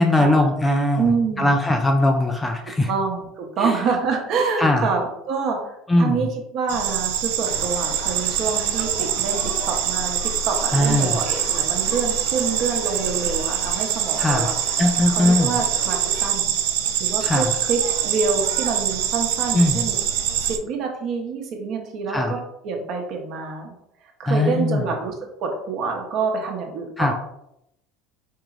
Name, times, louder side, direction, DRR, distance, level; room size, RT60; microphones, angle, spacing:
voice 1, 0.0-2.9 3.6-3.7 4.6-4.9 5.9-6.3 10.7-11.2 14.2-14.5 14.8-15.5 17.2-17.5 19.5-19.8 22.1-22.4 24.3-24.9 27.0-27.1, left 1 dB, 10° left, 4 dB, 0.3 m, -20 dB
voice 2, 1.0-1.7 2.9-6.3 6.5-10.2 10.4-14.5 15.1-16.6 17.0-20.0 20.5-22.4 22.6-23.7 24.2-25.1 25.4-27.1, right 5 dB, 45° right, 2 dB, 0.8 m, -26 dB
sound 1, 6.7-20.6, right 10 dB, 85° right, 0.4 m, -24 dB
sound 2, 7.5-16.3, left 2 dB, 70° left, 1.1 m, -39 dB
4.6 x 3.0 x 2.5 m, 0.79 s
cardioid pair, 155°, 0 cm